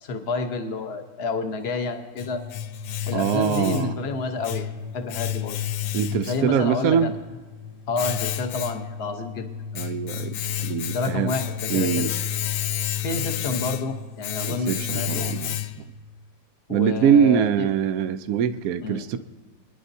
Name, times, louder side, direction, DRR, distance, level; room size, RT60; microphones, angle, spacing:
voice 1, 0.0-2.4 3.1-5.6 6.3-7.2 7.9-9.5 10.9-12.1 13.0-15.3 16.7-17.7 18.8-19.0, left 3 dB, 40° left, 6 dB, 1.0 m, -29 dB
Domestic sounds home sounds, 1.6-16.0, left 10 dB, 70° left, 1.0 m, -31 dB
voice 2, 3.1-4.0 5.9-7.1 9.7-11.3 11.7-12.1 14.5-15.9 16.7-19.2, right 8 dB, 70° right, 10 dB, 0.8 m, -23 dB
27.5 x 10.5 x 2.7 m, 1.4 s
omnidirectional pair, 2.1 m